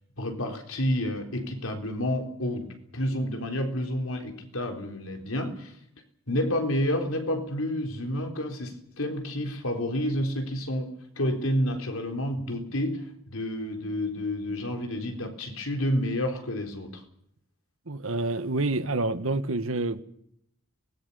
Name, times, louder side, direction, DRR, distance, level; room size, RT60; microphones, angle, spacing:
voice 1, 0.2-5.7 6.3-17.0, left 1 dB, 85° left, 4.1 m, -29 dB
voice 2, 17.9-20.0, right 2 dB, 80° right, 1.5 m, -28 dB
24.5 x 19.5 x 7.0 m
head